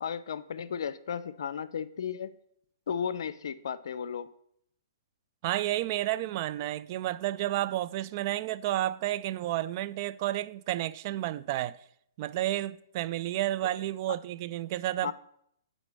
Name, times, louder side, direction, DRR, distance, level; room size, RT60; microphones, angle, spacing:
voice 1, 0.0-2.3 2.9-4.3 15.0-15.1, left 7 dB, 70° left, 0.6 m, -34 dB
voice 2, 5.4-11.8 12.2-15.1, right 14 dB, 40° right, 0.4 m, -31 dB
8.9 x 4.2 x 6.7 m
hypercardioid pair, 135°, 2 cm